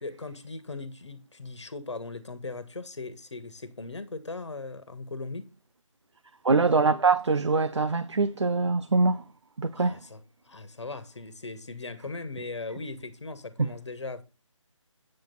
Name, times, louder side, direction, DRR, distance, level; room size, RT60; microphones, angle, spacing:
voice 1, 0.0-5.5 9.7-14.2, left 3 dB, 60° left, 1.5 m, -39 dB
voice 2, 6.4-9.2 9.6-10.0, right 3 dB, 60° right, 0.6 m, -23 dB
8.6 x 7.8 x 4.1 m
figure-of-eight pair, 155°, 17 cm